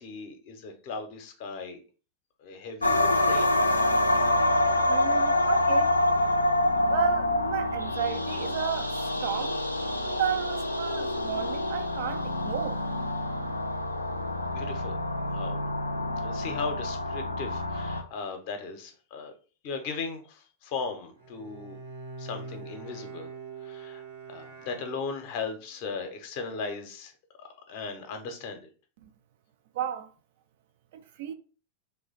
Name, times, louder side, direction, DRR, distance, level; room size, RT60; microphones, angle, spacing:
voice 1, 0.0-1.8 2.4-3.5 14.5-14.9 15.3-15.6 16.2-19.3 19.6-21.8 22.2-23.3 23.6-24.0 24.3-27.1 27.4-28.7, left 4 dB, 45° left, 0.7 m, -37 dB
sound 1, 2.8-18.0, left 1 dB, 85° left, 0.3 m, -27 dB
voice 2, 4.9-5.9 6.9-9.6 10.0-12.8 29.0-29.1 29.7-30.1 30.9-31.3, right 9 dB, 55° right, 0.3 m, -33 dB
Bowed string instrument, 21.2-25.5, right 4 dB, 75° right, 1.0 m, -43 dB
3.0 x 2.1 x 4.0 m
figure-of-eight pair, 90°, 0 cm